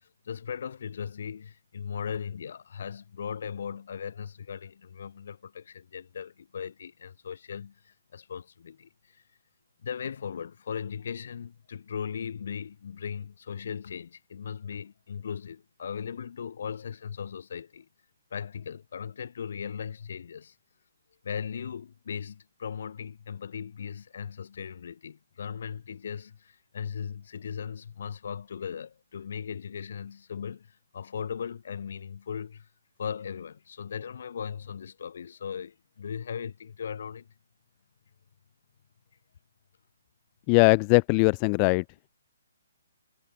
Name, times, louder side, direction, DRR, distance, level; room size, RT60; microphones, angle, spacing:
voice 1, 0.0-9.2 9.8-17.9 18.3-20.5 21.2-32.7 33.0-37.3, left 7 dB, 45° left, 3.4 m, -38 dB
voice 2, 40.5-41.8, left 40 dB or more, 15° left, 0.7 m, -20 dB
hypercardioid pair, 180°, 0 cm